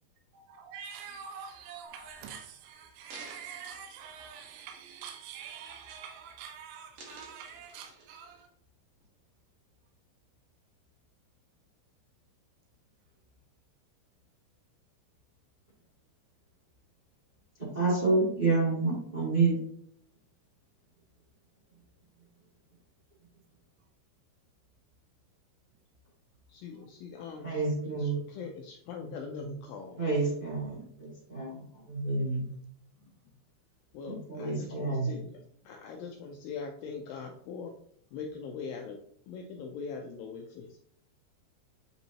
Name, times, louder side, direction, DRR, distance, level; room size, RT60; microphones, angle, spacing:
voice 1, 0.3-8.5 26.7-26.9 27.2-27.3, right 7 dB, 75° right, 2.6 m, -46 dB
sound 1, 2.1-2.2 2.8-4.9 5.3-5.5 5.8-6.4 6.7-8.4 9.0-9.1, right 3 dB, 60° right, 1.8 m, -53 dB
voice 2, 17.7-19.6 27.4-28.2 30.0-32.5 34.1-35.1, right 3 dB, 20° right, 1.2 m, -29 dB
voice 3, 26.5-27.5 28.0-30.0 31.6-31.7 33.0-33.1 33.9-35.4 35.6-37.7 38.1-39.0 39.3-40.8, left 5 dB, 80° left, 2.1 m, -41 dB
8.1 x 4.1 x 2.8 m
omnidirectional pair, 4.7 m